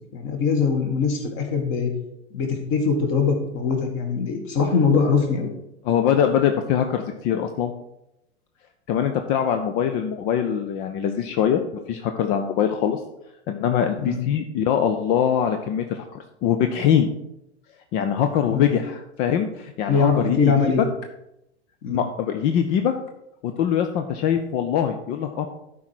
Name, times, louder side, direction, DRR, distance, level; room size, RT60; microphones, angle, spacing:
voice 1, 0.1-1.9 2.3-5.5 14.0-14.2 18.5-18.7 19.9-20.8 21.8-22.0, left 5 dB, 35° left, 4 dB, 1.8 m, -22 dB
voice 2, 5.8-7.7 8.9-11.6 11.9-13.0 13.5-17.1 17.9-20.9 21.9-22.9 23.4-25.5, left 9 dB, 20° left, 6 dB, 0.3 m, -23 dB
12.0 x 4.7 x 4.4 m, 0.84 s
figure-of-eight pair, 100°, 34 cm